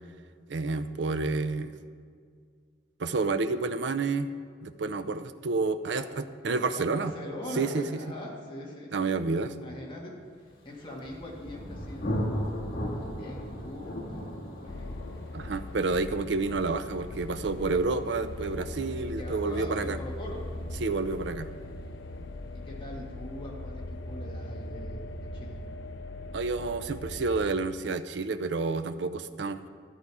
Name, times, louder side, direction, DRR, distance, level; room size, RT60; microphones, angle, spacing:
voice 1, 0.5-1.8 3.0-4.3 4.6-7.1 7.6-7.8 8.9-9.5 15.3-20.0 20.8-21.5 26.3-29.7, right 3 dB, 70° right, 11 dB, 0.5 m, -29 dB
voice 2, 6.6-9.0 9.6-10.1 10.6-12.2 12.5-15.1 19.1-20.4 22.5-25.6, left 1 dB, 25° left, -3 dB, 1.9 m, -42 dB
Thunder, 10.7-22.2, equal, 50° left, 2.0 m, -38 dB
sound 1, 14.7-27.6, left 1 dB, 75° left, 0.6 m, -40 dB
13.0 x 8.1 x 4.9 m, 2.1 s
head